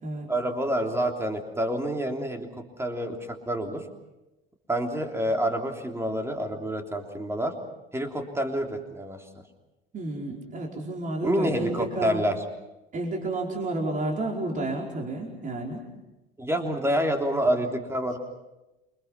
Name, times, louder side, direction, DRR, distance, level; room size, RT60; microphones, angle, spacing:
voice 1, 0.3-2.5 2.8-3.8 4.7-7.5 7.9-9.2 11.2-12.4 16.4-18.2, equal, 10° right, 4 dB, 3.3 m, -28 dB
voice 2, 9.9-12.2 12.9-15.8, right 2 dB, 25° right, 0 dB, 4.8 m, -31 dB
28.5 x 24.5 x 5.8 m, 1.0 s
figure-of-eight pair, 70°, 29 cm